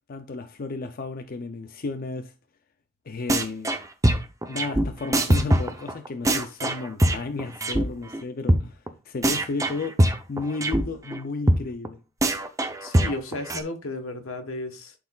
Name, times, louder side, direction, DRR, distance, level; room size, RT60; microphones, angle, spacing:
voice 1, 0.1-2.3 3.1-3.8 4.5-10.0 10.3-12.0, left 3 dB, 45° left, 0.5 m, -33 dB
sound 1, 3.3-3.8 4.0-7.8 8.1-8.2 8.5-8.6 8.9-9.0 9.2-10.8 11.1-11.2 11.5-11.6 11.8-11.9 12.2-13.6, right 1 dB, 15° right, 0.6 m, -22 dB
voice 2, 12.8-14.9, left 2 dB, 80° left, 1.2 m, -33 dB
11.5 x 4.3 x 2.4 m
head